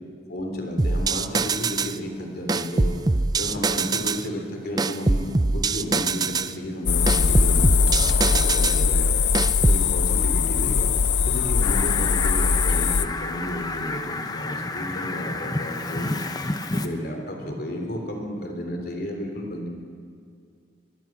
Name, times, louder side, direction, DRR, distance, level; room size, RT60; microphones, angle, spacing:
voice 1, 0.3-3.0 3.4-5.3 5.5-9.2 9.6-10.9 11.3-16.3 16.7-19.7, equal, 55° left, 2 dB, 3.5 m, -32 dB
sound 1, 0.8-2.0 2.5-4.2 4.8-6.5 7.1-8.8 9.3-9.9, right 3 dB, 20° right, 0.5 m, -23 dB
sound 2, 6.9-13.1, left 5 dB, 75° left, 0.8 m, -21 dB
Fowl, 11.6-16.9, left 2 dB, 20° left, 1.0 m, -30 dB
23.5 x 21.0 x 6.1 m, 2.3 s
head